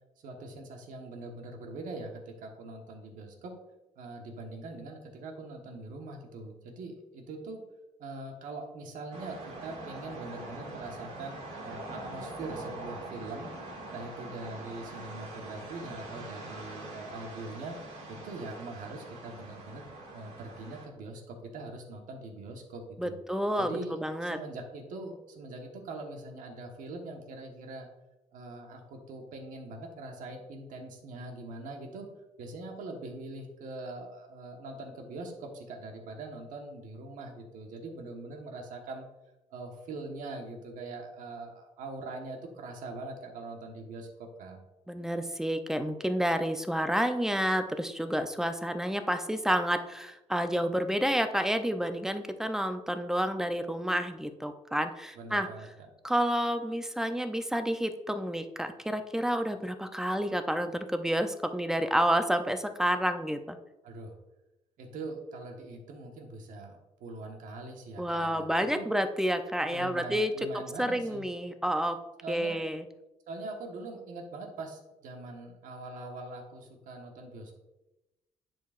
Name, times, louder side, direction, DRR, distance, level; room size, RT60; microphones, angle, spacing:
voice 1, 0.2-3.5 4.0-7.6 8.0-13.5 13.9-17.8 18.1-23.2 23.6-27.9 28.3-32.1 32.4-39.1 39.5-44.6 55.1-55.7 63.8-64.1 64.8-68.9 69.7-71.2 72.2-72.6 73.3-77.6, right 2 dB, 80° right, 2 dB, 1.3 m, -42 dB
sound 1, 9.1-20.9, right 2 dB, 65° right, 2.1 m, -43 dB
voice 2, 23.0-24.4 44.9-55.5 56.0-63.6 68.0-70.3 70.8-72.0 72.3-72.8, equal, 5° right, 8 dB, 0.5 m, -29 dB
10.0 x 4.6 x 2.5 m, 0.99 s
cardioid pair, 115°, 13 cm